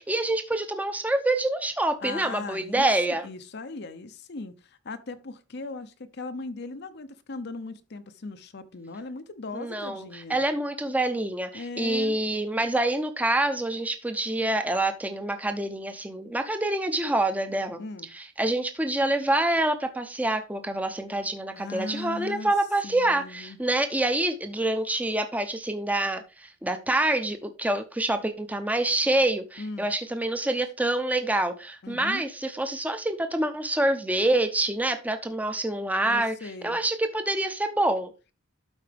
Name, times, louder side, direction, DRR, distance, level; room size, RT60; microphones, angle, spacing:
voice 1, 0.0-3.3 9.5-17.8 18.1-36.3 36.6-38.1, right 1 dB, 10° right, 0.7 m, -26 dB
voice 2, 2.0-10.4 11.5-12.2 17.8-18.1 21.5-22.5 22.8-23.6 29.6-29.9 31.8-32.2 36.0-36.8, left 3 dB, 55° left, 0.7 m, -38 dB
12.5 x 4.7 x 3.4 m
head